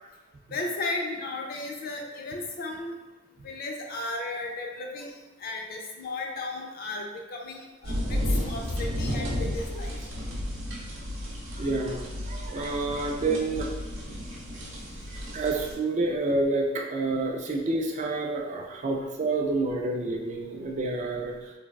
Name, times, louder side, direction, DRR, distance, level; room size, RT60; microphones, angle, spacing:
voice 1, 0.5-3.0 3.4-10.0, left 2 dB, 50° left, 2 dB, 0.4 m, -35 dB
sound 1, 7.8-15.7, equal, 85° right, 0.7 m, -32 dB
voice 2, 11.6-13.7 15.1-21.5, right 2 dB, 40° right, 1 dB, 0.4 m, -29 dB
3.3 x 2.3 x 2.2 m, 1.2 s
head